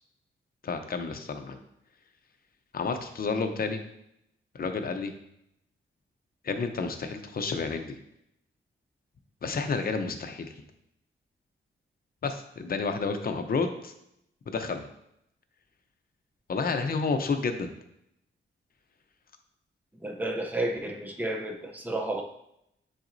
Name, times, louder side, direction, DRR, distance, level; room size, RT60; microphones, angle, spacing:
voice 1, 0.6-1.6 2.7-3.8 4.5-5.1 6.4-8.0 9.4-10.5 12.2-13.9 14.5-14.9 16.5-17.7, left 4 dB, 45° left, 6 dB, 0.7 m, -30 dB
voice 2, 20.0-22.2, right 1 dB, 10° right, 2 dB, 0.7 m, -32 dB
8.9 x 4.1 x 2.6 m, 0.78 s
wide cardioid pair, 120°, 21 cm